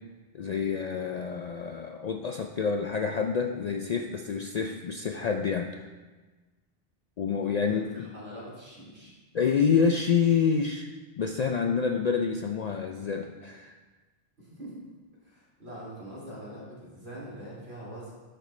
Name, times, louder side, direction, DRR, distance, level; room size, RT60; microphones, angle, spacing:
voice 1, 0.3-5.9 7.2-8.1 9.3-10.9 11.2-13.7, left 6 dB, 55° left, 4 dB, 0.5 m, -27 dB
voice 2, 7.7-9.1 14.4-14.8 15.2-18.1, right 1 dB, 90° right, -7 dB, 3.0 m, -43 dB
12.0 x 5.4 x 3.2 m, 1.3 s
omnidirectional pair, 1.0 m